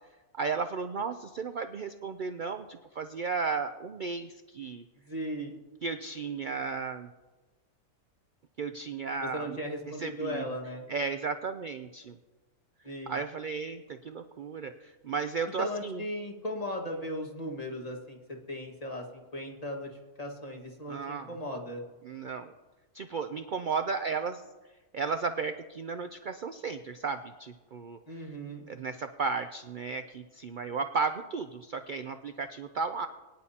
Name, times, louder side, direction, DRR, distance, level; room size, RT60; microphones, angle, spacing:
voice 1, 0.4-4.8 5.8-7.1 8.6-9.6 9.9-10.4 10.9-12.2 13.1-16.0 20.9-21.3 22.0-22.5 22.9-24.4 24.9-28.0 28.7-33.1, right 5 dB, 85° right, 8 dB, 0.4 m, -34 dB
voice 2, 5.0-5.6 9.2-10.8 12.8-13.2 15.6-18.2 18.5-19.9 20.2-21.8 28.1-28.7, equal, 25° left, 1 dB, 1.7 m, -37 dB
22.5 x 10.5 x 2.8 m, 1.2 s
omnidirectional pair, 1.5 m